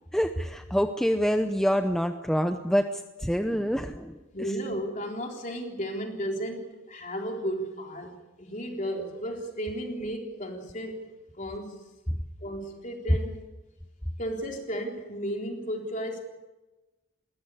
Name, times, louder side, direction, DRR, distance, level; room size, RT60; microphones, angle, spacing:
voice 1, 0.1-4.2, equal, ahead, 7 dB, 0.7 m, -26 dB
voice 2, 4.3-11.8 12.4-13.4 14.2-16.2, equal, 35° left, 2 dB, 3.8 m, -34 dB
20.5 x 17.5 x 9.9 m, 1.1 s
head